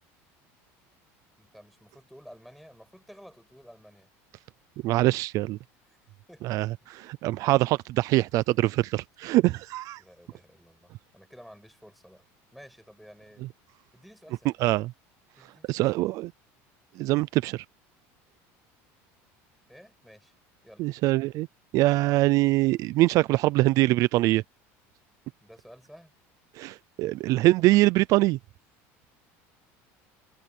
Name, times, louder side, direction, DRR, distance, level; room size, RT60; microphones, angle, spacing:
voice 1, 1.4-4.1 5.9-6.0 6.3-6.6 10.0-12.3 12.5-13.5 13.9-14.5 15.4-15.8 19.7-20.3 20.6-20.9 25.4-26.1, equal, ahead, 5.9 m, -52 dB
voice 2, 4.8-5.6 6.4-6.7 7.0-10.0 14.6-14.9 15.7-16.3 17.0-17.6 20.8-21.5 21.7-24.4 26.6-28.4, right 18 dB, 55° right, 0.5 m, -23 dB
cardioid pair, 135°, 7 cm